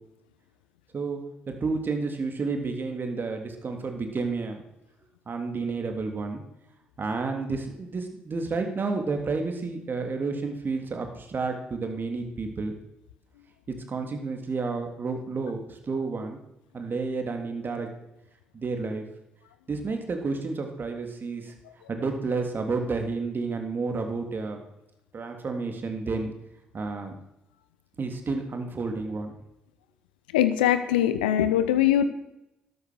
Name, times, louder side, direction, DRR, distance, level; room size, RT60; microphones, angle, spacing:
voice 1, 1.5-4.6 5.3-6.4 7.0-12.7 13.7-16.4 16.7-17.9 18.5-19.0 19.7-21.5 21.9-24.6 25.1-26.3 26.7-27.1 28.0-29.3, right 4 dB, 45° right, 4 dB, 3.3 m, -30 dB
voice 2, 30.3-32.0, left 11 dB, 80° left, 12 dB, 1.0 m, -22 dB
13.0 x 12.5 x 6.4 m, 0.87 s
figure-of-eight pair, 45°, 5 cm